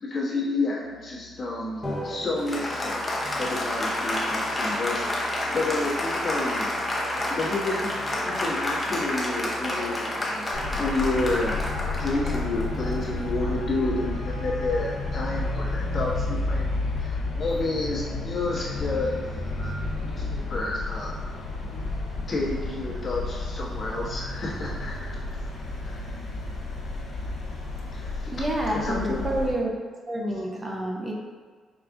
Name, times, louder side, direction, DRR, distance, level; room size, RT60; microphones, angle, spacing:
voice 1, 0.0-5.0 5.5-6.8 7.3-7.9 8.2-10.1 10.8-19.7 20.0-21.1 22.3-25.2 25.8-26.0 27.9-28.3 28.8-29.2, left 2 dB, 45° left, -5 dB, 1.2 m, -30 dB
Musical instrument, 0.8-12.8, left 2 dB, 70° right, 1.4 m, -50 dB
Applause, 1.8-13.7, left 1 dB, 20° left, 0.8 m, -30 dB
Traffic noise roadway noise, 10.5-29.5, left 2 dB, 65° left, 1.1 m, -31 dB
voice 2, 28.3-29.7 30.1-31.1, right 1 dB, 25° right, -1 dB, 0.7 m, -28 dB
5.0 x 2.4 x 3.6 m, 1.6 s
cardioid pair, 90°, 0 cm